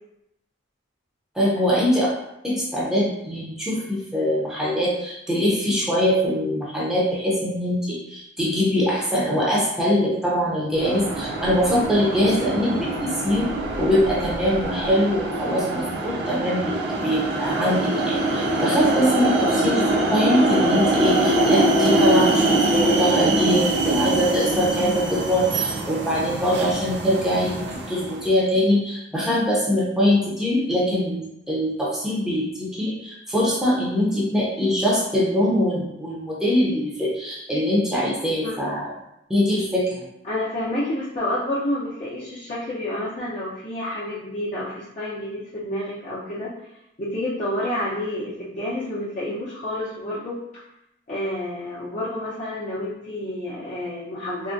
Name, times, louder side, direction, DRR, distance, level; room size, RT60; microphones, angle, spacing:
voice 1, 1.3-2.1 2.4-13.5 13.8-27.5 27.9-38.9 39.3-39.9, equal, 5° right, -6 dB, 0.6 m, -23 dB
sound 1, 10.8-28.3, right 2 dB, 60° right, 0.4 m, -23 dB
voice 2, 40.2-46.5 47.0-50.4 51.1-54.5, left 1 dB, 40° left, -11 dB, 0.6 m, -29 dB
3.5 x 2.1 x 2.6 m, 0.83 s
head